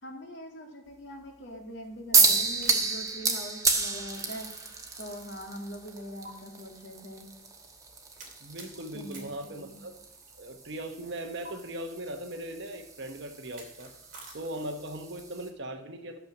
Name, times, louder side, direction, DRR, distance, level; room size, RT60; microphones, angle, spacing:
voice 1, 0.0-4.5 5.0-7.3 8.9-9.8, equal, 65° left, 2 dB, 2.1 m, -43 dB
sound 1, 2.1-15.5, right 4 dB, 15° right, 1.1 m, -32 dB
sound 2, 2.3-4.9 5.2-5.3 6.2-6.3 8.2-10.3 11.4-11.5 13.4-14.9, right 3 dB, 40° right, 2.8 m, -50 dB
voice 2, 8.4-10.0 10.3-13.9 14.3-16.2, right 1 dB, 60° right, 6 dB, 1.0 m, -39 dB
12.5 x 7.3 x 5.9 m, 0.95 s
head